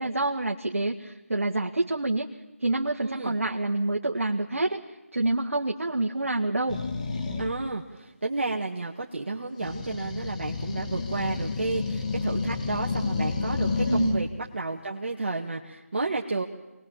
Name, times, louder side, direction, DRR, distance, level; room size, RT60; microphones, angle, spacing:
voice 1, 0.0-2.3 2.6-4.8 5.1-6.8 13.9-14.3, right 2 dB, 70° right, 1 dB, 1.9 m, -27 dB
voice 2, 3.0-3.3 7.4-16.4, right 3 dB, 50° right, 0 dB, 2.0 m, -31 dB
sound 1, 6.7-7.5 9.6-14.2, left 4 dB, 30° left, 2.4 m, -30 dB
27.0 x 20.5 x 7.5 m, 1.1 s
figure-of-eight pair, 165°, 8 cm